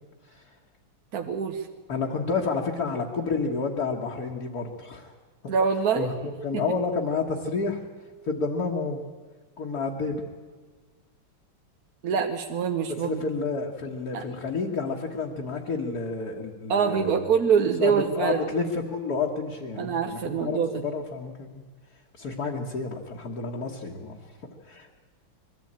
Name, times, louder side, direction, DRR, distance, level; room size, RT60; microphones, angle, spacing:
voice 1, 1.1-1.6 5.5-6.1 6.5-6.6 12.0-13.2 14.1-14.2 16.7-18.4 19.8-20.8, right 6 dB, 55° right, 4 dB, 1.2 m, -25 dB
voice 2, 1.9-5.1 5.4-5.5 6.0-6.1 6.4-7.8 8.2-9.0 9.6-10.2 13.0-17.3 17.8-21.5 22.1-24.3 24.6-24.9, left 4 dB, 45° left, -1 dB, 1.8 m, -30 dB
21.5 x 13.5 x 8.8 m, 1.4 s
omnidirectional pair, 2.4 m